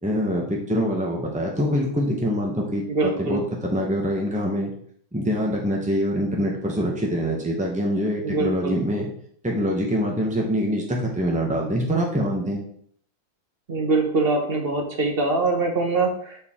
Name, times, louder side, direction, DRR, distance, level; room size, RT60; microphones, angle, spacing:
voice 1, 0.0-4.7 5.1-9.1 9.4-12.6, equal, 10° right, -1 dB, 0.3 m, -24 dB
voice 2, 2.9-3.4 8.2-8.7 13.7-16.4, right 3 dB, 35° right, 3 dB, 1.1 m, -23 dB
7.5 x 4.4 x 3.6 m, 0.62 s
omnidirectional pair, 2.1 m